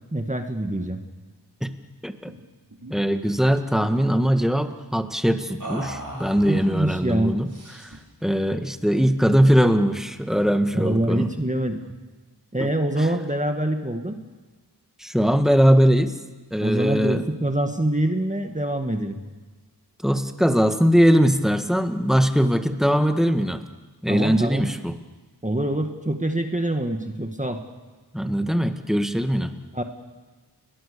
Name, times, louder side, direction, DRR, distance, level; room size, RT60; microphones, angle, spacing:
voice 1, 0.1-1.0 6.4-7.4 10.7-11.8 12.5-14.2 16.6-19.2 24.1-24.7 25.4-27.6 29.7-29.8, right 1 dB, 20° right, 5 dB, 2.0 m, -25 dB
sound 1, 2.3-2.5 2.7-2.9 3.3-4.0 5.6-6.8 7.5-8.1, right 1 dB, 50° right, 5.3 m, -38 dB
voice 2, 2.9-7.5 7.8-7.9 8.2-11.3 12.6-12.7 15.0-16.1 16.5-17.2 20.0-23.6 24.0-24.9 28.1-29.5, equal, ahead, 7 dB, 1.9 m, -21 dB
30.0 x 21.5 x 6.9 m, 1.3 s
wide cardioid pair, 55°, 41 cm